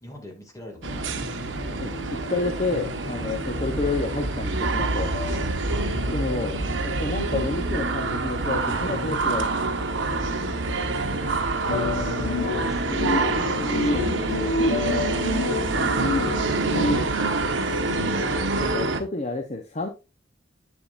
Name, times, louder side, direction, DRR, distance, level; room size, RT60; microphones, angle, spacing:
voice 1, 0.0-1.5 5.7-5.9 11.1-16.5 17.5-18.9, equal, 20° left, 1 dB, 2.3 m, -44 dB
sound 1, 0.8-17.0, left 3 dB, 65° left, 0.9 m, -32 dB
sound 2, 0.8-19.0, right 3 dB, 85° right, 1.1 m, -26 dB
voice 2, 2.3-5.1 6.1-9.6 13.4-13.7 15.8-15.9 17.6-17.7 18.6-19.9, left 3 dB, 40° left, 4 dB, 0.9 m, -30 dB
8.4 x 7.2 x 2.6 m, 0.27 s
head